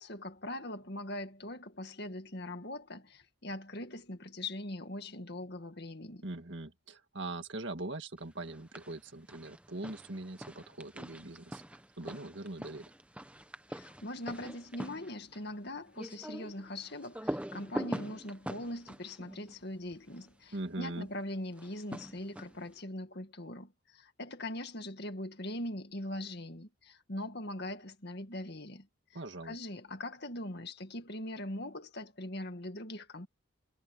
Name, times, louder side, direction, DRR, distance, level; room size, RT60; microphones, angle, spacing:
voice 1, 0.0-6.3 13.7-33.3, left 1 dB, 50° left, 2.0 m, -41 dB
voice 2, 6.2-12.8 20.5-21.1 29.1-29.6, right 2 dB, 55° right, 2.0 m, -41 dB
sound 1, 8.4-9.0 9.3-20.3 21.5-22.7, equal, 5° right, 1.0 m, -43 dB
head